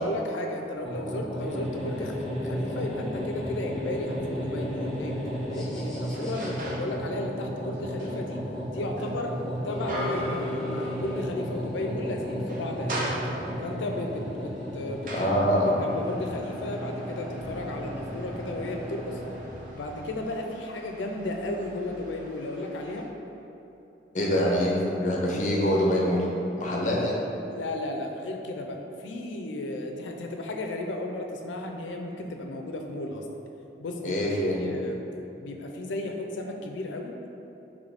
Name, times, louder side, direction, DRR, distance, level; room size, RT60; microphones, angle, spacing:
voice 1, 0.0-5.2 5.5-8.4 8.7-9.4 9.6-13.1 13.6-15.3 15.6-19.2 19.7-23.1 27.5-33.2 33.8-34.2 34.5-35.0 35.4-37.3, left 1 dB, 85° left, 3 dB, 0.4 m, -34 dB
sound 1, 0.8-19.7, equal, ahead, 0.6 m, -34 dB
sound 2, 4.7-4.8 5.4-7.0 7.3-11.5 11.8-11.9 12.3-13.7 14.4-23.1, right 1 dB, 45° right, 0.6 m, -40 dB
voice 2, 15.1-15.7 24.1-26.2 26.6-27.2 34.0-34.6, equal, 45° left, -2 dB, 0.6 m, -24 dB
3.4 x 3.1 x 3.9 m, 3.0 s
head